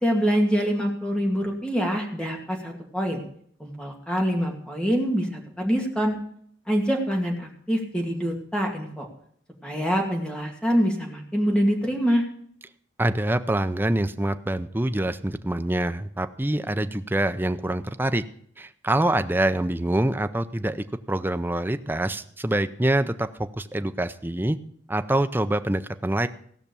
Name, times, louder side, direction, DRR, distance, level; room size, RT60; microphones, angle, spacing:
voice 1, 0.0-3.2 3.6-6.2 6.7-9.1 9.6-12.2, equal, 5° left, 1 dB, 2.2 m, -25 dB
voice 2, 13.0-18.2 18.6-24.6 24.9-26.3, right 1 dB, 10° right, 9 dB, 0.5 m, -25 dB
16.5 x 6.0 x 6.9 m, 0.63 s
head